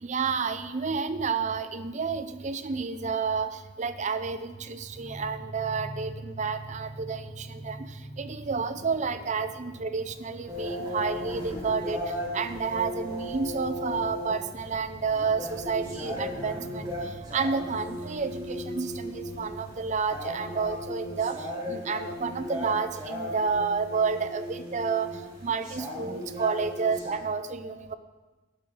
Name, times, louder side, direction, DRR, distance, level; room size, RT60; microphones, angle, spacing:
voice 1, 0.0-27.9, right 5 dB, 40° right, 11 dB, 0.5 m, -30 dB
sound 1, 4.0-18.6, right 1 dB, 65° left, 3.4 m, -46 dB
sound 2, 10.5-27.2, equal, 20° right, 4.0 m, -36 dB
11.5 x 11.5 x 3.8 m, 1.2 s
head